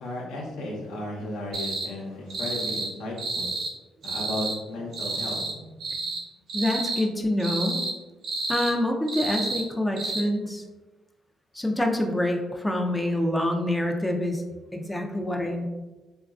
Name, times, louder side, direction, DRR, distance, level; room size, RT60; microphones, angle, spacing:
voice 1, 0.0-3.5 4.0-5.4, left 1 dB, 90° left, -2 dB, 0.7 m, -34 dB
sound 1, 1.5-1.9 2.3-2.9 3.2-3.7 4.0-4.6 4.9-5.5 5.8-6.2 6.5-7.0 7.4-7.9 8.2-8.7 9.1-9.6 10.0-10.2, right 3 dB, 75° right, 0.8 m, -30 dB
voice 2, 6.5-7.8 8.5-10.6 11.5-14.4 14.7-15.7, left 1 dB, 5° left, 2 dB, 0.3 m, -26 dB
3.0 x 2.3 x 2.3 m, 1.2 s
cardioid pair, 90°, 0 cm